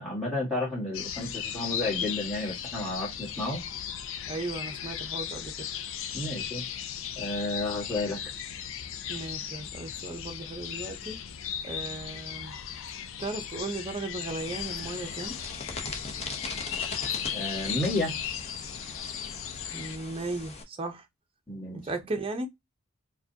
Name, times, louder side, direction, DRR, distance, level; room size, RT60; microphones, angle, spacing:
voice 1, 0.0-3.6 6.1-6.6 7.2-8.3 17.3-18.1 21.5-21.9, left 2 dB, ahead, 1.6 m, -31 dB
sound 1, 0.9-20.0, left 9 dB, 65° left, 0.5 m, -36 dB
voice 2, 4.3-5.7 9.1-11.2 11.6-12.5 13.2-15.4 19.7-21.1 21.7-22.5, right 2 dB, 25° right, 0.6 m, -36 dB
sound 2, 14.4-20.6, left 3 dB, 30° left, 0.8 m, -40 dB
4.6 x 2.2 x 2.7 m
head